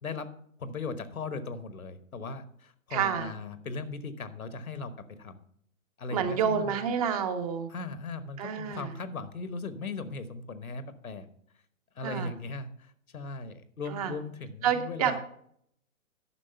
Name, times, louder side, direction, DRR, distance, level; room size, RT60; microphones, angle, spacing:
voice 1, 0.6-5.4 6.0-6.9 7.7-11.3 11.9-15.2, left 3 dB, 80° left, 12 dB, 1.2 m, -38 dB
voice 2, 2.9-3.3 6.1-7.7 8.4-8.9 12.0-12.3 13.9-14.1 14.6-15.2, right 7 dB, 25° right, 9 dB, 0.8 m, -29 dB
9.9 x 6.3 x 5.7 m, 0.68 s
figure-of-eight pair, 130°, 42 cm